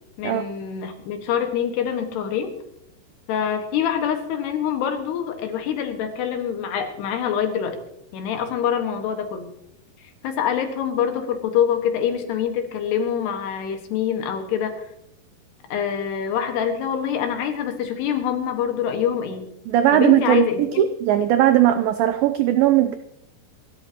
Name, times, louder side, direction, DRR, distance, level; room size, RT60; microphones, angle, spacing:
voice 1, 0.2-2.5 3.3-7.8 8.1-9.5 10.2-14.8 15.7-19.5 19.9-20.8, left 8 dB, 75° left, 6 dB, 3.6 m, -25 dB
voice 2, 19.7-23.0, right 12 dB, 85° right, 9 dB, 2.0 m, -18 dB
26.5 x 12.5 x 3.0 m, 0.77 s
omnidirectional pair, 4.9 m